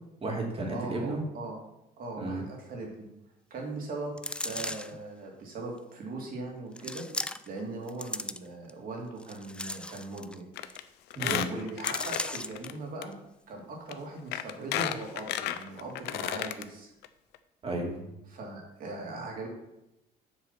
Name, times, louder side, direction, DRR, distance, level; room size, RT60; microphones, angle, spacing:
voice 1, 0.2-1.2 2.2-2.5 11.2-11.4 17.6-18.1, right 2 dB, 35° right, 1 dB, 2.6 m, -33 dB
voice 2, 0.7-1.6 2.0-3.1 3.5-4.2 4.4-7.0 7.5-10.4 11.2-13.1 13.5-16.9 18.3-19.5, right 2 dB, 55° right, 0 dB, 2.8 m, -39 dB
sound 1, 4.2-5.0 5.8-5.9 6.8-7.6 7.9-8.7 9.2-10.4 10.7-10.8 11.1-11.3 11.8-12.7 13.1-13.2, left 2 dB, 5° left, 0.4 m, -36 dB
Squeak, 10.6-10.8 11.1-12.7 13.0-13.1 13.9-14.0 14.3-16.6 17.0-17.1 17.3-17.4, left 12 dB, 85° left, 0.6 m, -33 dB
7.5 x 6.1 x 5.9 m, 0.88 s
cardioid pair, 110°, 17 cm